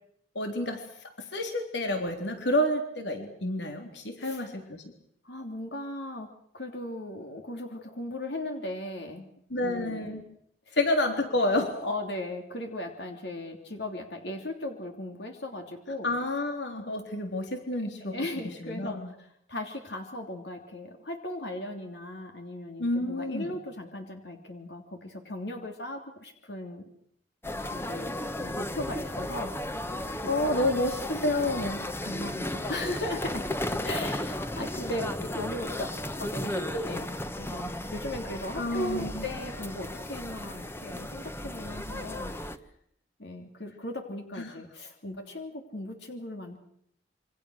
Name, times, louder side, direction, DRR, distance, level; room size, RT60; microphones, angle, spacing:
voice 1, 0.4-4.8 9.5-10.2 10.8-11.8 16.0-18.2 18.6-19.1 22.8-23.6 30.3-31.8 33.9-34.0 38.6-39.2 44.4-44.5, left 1 dB, 85° left, 5 dB, 3.6 m, -29 dB
voice 2, 4.2-4.5 5.2-9.3 9.6-10.1 10.7-10.8 11.8-16.1 18.0-26.8 27.7-29.9 30.2-30.4 31.7-42.3 43.2-46.6, left 1 dB, 70° left, 4 dB, 3.2 m, -37 dB
sound 1, 27.4-42.6, left 1 dB, 15° left, 1.3 m, -35 dB
28.0 x 25.5 x 6.6 m, 0.68 s
head